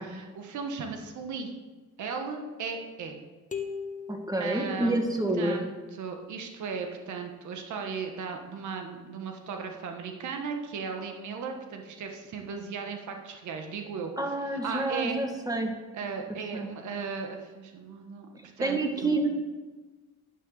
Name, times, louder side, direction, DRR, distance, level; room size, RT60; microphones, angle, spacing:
voice 1, 0.0-1.5 2.0-3.2 4.4-5.0 5.4-5.7 6.0-14.1 14.5-15.2 15.9-18.3 18.6-19.2, right 5 dB, 75° right, 4 dB, 1.4 m, -36 dB
sound 1, 3.5-5.4, left 6 dB, 25° left, 1.3 m, -39 dB
voice 2, 4.1-5.7 14.2-15.7 16.5-16.7 18.6-19.3, right 2 dB, 10° right, 3 dB, 1.8 m, -28 dB
11.0 x 5.9 x 7.0 m, 1.3 s
cardioid pair, 90°, 30 cm